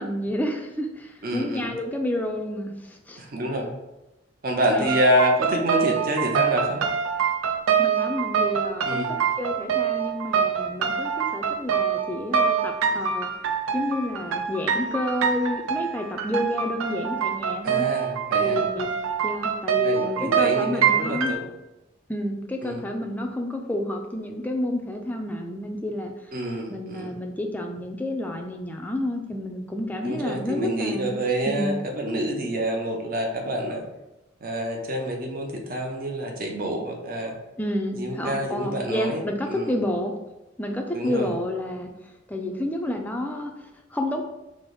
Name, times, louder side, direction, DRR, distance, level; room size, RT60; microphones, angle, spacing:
voice 1, 0.0-3.2 4.7-4.9 7.8-13.3 13.7-17.9 18.4-18.9 19.2-21.3 22.1-26.4 26.7-31.2 31.5-31.7 37.6-40.1 40.6-41.9 42.3-44.2, left 1 dB, 10° left, 3 dB, 0.3 m, -30 dB
voice 2, 1.2-1.7 3.2-3.7 4.4-6.8 8.8-9.1 17.6-18.6 19.8-21.5 22.6-22.8 26.3-27.1 30.0-33.8 34.4-37.3 38.0-39.2 39.5-39.7 40.9-41.3, equal, 45° right, 1 dB, 0.6 m, -27 dB
sound 1, 4.9-21.3, right 7 dB, 90° right, 0.4 m, -25 dB
4.9 x 2.0 x 3.8 m, 0.99 s
head